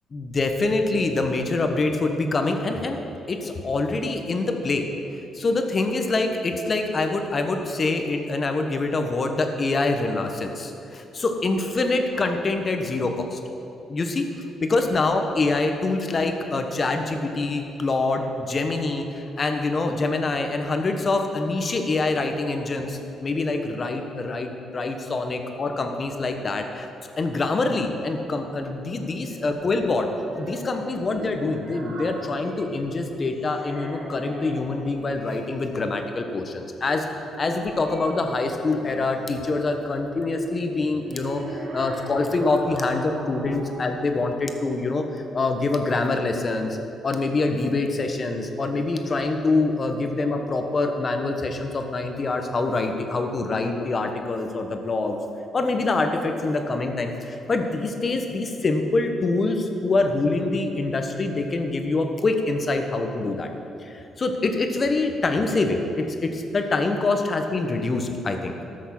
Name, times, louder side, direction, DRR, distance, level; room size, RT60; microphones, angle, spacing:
voice 1, 0.1-3.0 3.3-4.8 5.3-13.4 13.9-14.3 14.6-26.9 27.2-30.1 30.4-37.1 37.4-46.8 47.0-55.2 55.5-63.5 63.8-68.5, left 3 dB, 40° left, 5 dB, 1.2 m, -25 dB
sound 1, 30.2-33.1 33.4-35.7 36.8-39.4 40.8-44.1, right 1 dB, 70° right, 2.9 m, -39 dB
13.5 x 6.4 x 6.1 m, 2.8 s
cardioid pair, 90°, 0 cm